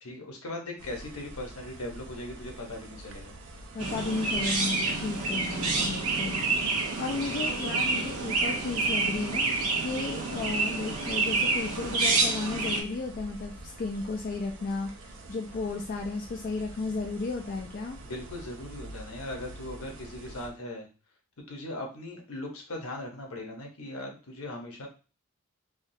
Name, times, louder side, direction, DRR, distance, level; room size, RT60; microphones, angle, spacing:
voice 1, 0.0-3.3 18.0-20.9 21.4-24.9, left 1 dB, 70° left, 1 dB, 0.9 m, -39 dB
sound 1, 0.8-20.5, right 1 dB, 55° right, 0.5 m, -46 dB
voice 2, 3.7-6.4 7.0-9.4 9.8-18.0, left 3 dB, 40° left, 0 dB, 0.3 m, -34 dB
Chirp tweet, 3.8-12.8, right 3 dB, 80° right, 0.8 m, -28 dB
3.5 x 2.3 x 2.7 m, 0.33 s
head